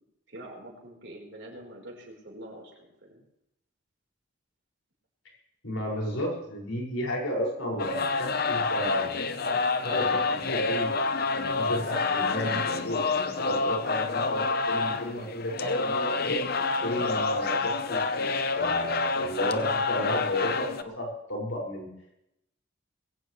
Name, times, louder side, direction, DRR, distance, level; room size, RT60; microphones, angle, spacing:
voice 1, 0.3-3.2, right 1 dB, 60° right, 0 dB, 4.2 m, -45 dB
voice 2, 5.6-9.1 9.8-10.9 11.3-16.4 16.8-18.3 18.6-21.9, equal, 85° left, -1 dB, 5.8 m, -33 dB
sound 1, 7.8-20.8, left 4 dB, 50° left, 0.8 m, -28 dB
21.0 x 16.5 x 3.2 m, 0.82 s
head